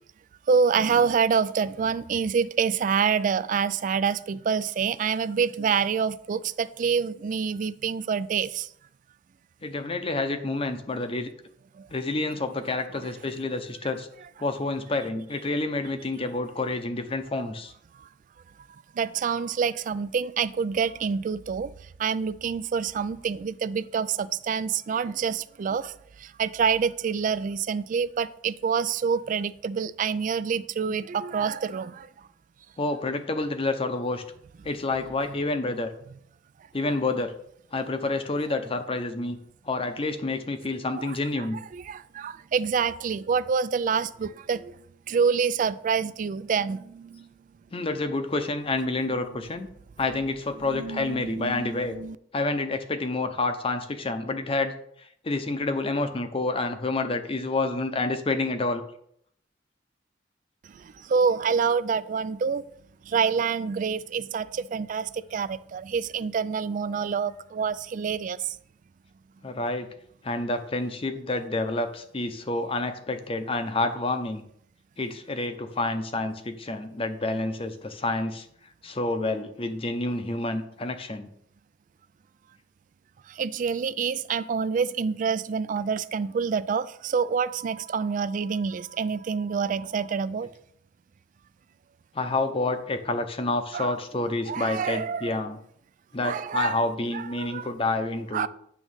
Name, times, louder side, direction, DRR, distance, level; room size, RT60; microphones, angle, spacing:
voice 1, 0.5-8.7 11.8-11.9 19.0-21.7 22.0-25.9 26.2-32.1 41.0-41.2 41.7-44.7 45.1-47.3 50.6-52.2 60.7-62.6 63.1-68.6 83.3-90.5 93.7-94.0 94.5-95.3 96.2-96.8 97.1-97.7 98.3-98.5, right 6 dB, 45° right, 0.3 m, -27 dB
voice 2, 9.6-11.3 11.9-14.1 14.4-17.7 30.9-31.0 32.8-34.2 34.6-35.9 36.7-37.3 37.7-39.4 39.7-41.6 47.7-49.7 50.0-52.0 52.3-54.7 55.2-58.8 69.4-69.9 70.2-74.4 75.0-78.5 78.8-81.3 92.1-95.6 96.1-98.5, left 2 dB, 30° left, 0.7 m, -28 dB
9.1 x 3.1 x 6.3 m
head